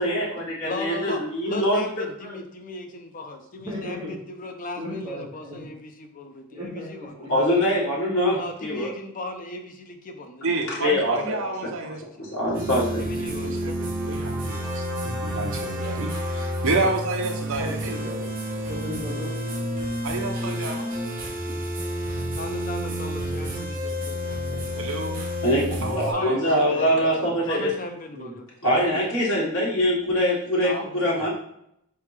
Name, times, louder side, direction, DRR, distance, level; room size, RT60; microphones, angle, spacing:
voice 1, 0.0-2.1 7.3-8.9 10.7-11.4 11.6-11.7 12.2-13.0 25.4-27.7 28.6-31.3, equal, 65° left, -6 dB, 1.5 m, -23 dB
voice 2, 0.6-1.2 1.5-7.4 8.3-12.4 12.9-13.8 22.3-25.3 26.1-27.0 27.4-28.5, left 2 dB, 40° left, 5 dB, 0.5 m, -37 dB
voice 3, 3.6-4.1 4.8-5.6 6.5-7.3 17.6-19.3 21.5-21.6 26.7-27.3 28.1-28.3, left 1 dB, 20° right, -7 dB, 1.5 m, -36 dB
voice 4, 10.4-12.0 13.2-17.9 20.0-20.9 24.8-25.2 25.8-26.4 28.6-29.0 30.6-31.3, right 3 dB, 65° right, 3 dB, 0.7 m, -30 dB
sound 1, 12.5-26.1, equal, 40° right, 1.1 m, -30 dB
sound 2, 13.6-19.8, right 2 dB, 5° right, 1.2 m, -41 dB
4.4 x 3.4 x 3.2 m, 0.75 s
head